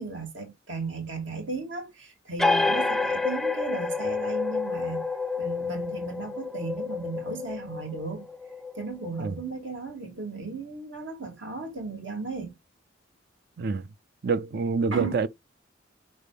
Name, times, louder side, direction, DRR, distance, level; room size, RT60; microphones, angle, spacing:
voice 1, 0.0-5.1 5.4-8.3 8.7-12.5 14.9-15.1, right 3 dB, 75° right, 3.1 m, -35 dB
sound 1, 2.4-9.6, left 3 dB, ahead, 0.3 m, -29 dB
voice 2, 13.6-13.9 14.2-15.3, right 4 dB, 55° right, 0.5 m, -26 dB
11.0 x 4.4 x 3.5 m
head